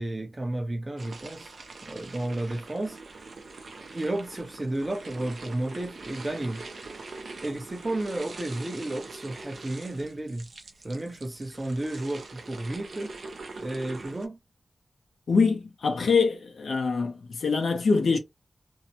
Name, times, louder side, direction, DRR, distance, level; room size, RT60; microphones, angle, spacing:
voice 1, 0.0-1.5 1.8-3.0 3.9-6.6 7.4-10.4 10.8-13.1 13.6-14.4, right 1 dB, 25° right, 0.7 m, -32 dB
sound 1, 1.0-14.3, right 3 dB, 65° right, 0.5 m, -43 dB
voice 2, 15.3-18.2, left 4 dB, 80° left, 0.7 m, -24 dB
2.6 x 2.2 x 2.7 m
wide cardioid pair, 110°, 0 cm